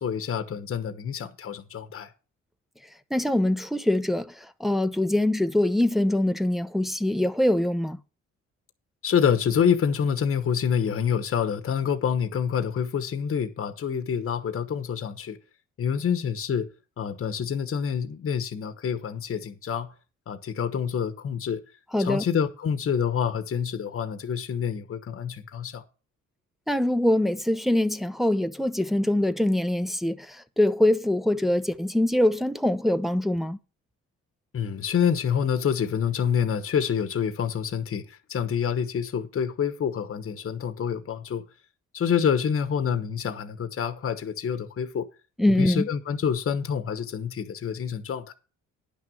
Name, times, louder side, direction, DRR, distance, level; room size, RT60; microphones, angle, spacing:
voice 1, 0.0-2.1 9.0-15.4 15.8-16.7 17.0-19.9 20.3-21.6 22.0-25.8 34.5-41.4 41.9-45.1 45.6-48.3, left 7 dB, 45° left, 1.1 m, -27 dB
voice 2, 3.1-4.3 4.6-8.0 21.9-22.2 26.7-33.6 45.4-45.9, left 1 dB, ahead, 0.7 m, -23 dB
10.0 x 6.2 x 6.3 m
cardioid pair, 90°, 30 cm